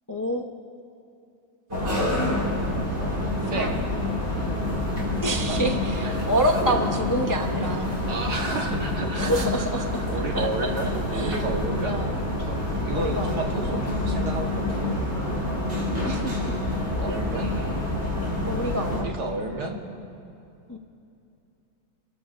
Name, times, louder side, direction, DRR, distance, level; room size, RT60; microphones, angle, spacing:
voice 1, 0.1-0.5 1.8-2.2 3.5-3.9 5.2-8.0 9.1-10.1 10.3-10.7 11.1-11.4 11.9-12.2 12.9-13.9 16.0-16.6 17.1-17.7 18.5-19.1 20.7-20.8, equal, 25° left, 3 dB, 0.4 m, -28 dB
sound 1, 1.7-19.0, left 1 dB, 40° right, 3.8 m, -27 dB
voice 2, 3.5-3.8 5.5-6.7 8.0-9.3 10.1-12.0 12.4-15.0 17.0-17.6 18.9-19.8, right 2 dB, 90° right, 1 dB, 1.9 m, -32 dB
29.0 x 14.0 x 2.5 m, 2.7 s
omnidirectional pair, 1.7 m